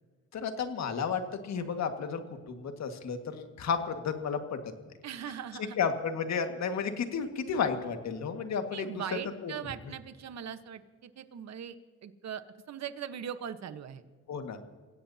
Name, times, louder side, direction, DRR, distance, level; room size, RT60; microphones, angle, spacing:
voice 1, 0.3-2.2 2.5-4.6 5.8-8.9 9.4-9.5 14.3-14.6, left 6 dB, 65° left, 6 dB, 1.9 m, -32 dB
voice 2, 5.0-5.8 8.7-11.7 12.0-12.4 12.7-14.0, right 8 dB, 60° right, 10 dB, 1.2 m, -40 dB
30.0 x 16.5 x 2.9 m, 1.4 s
cardioid pair, 90°, 30 cm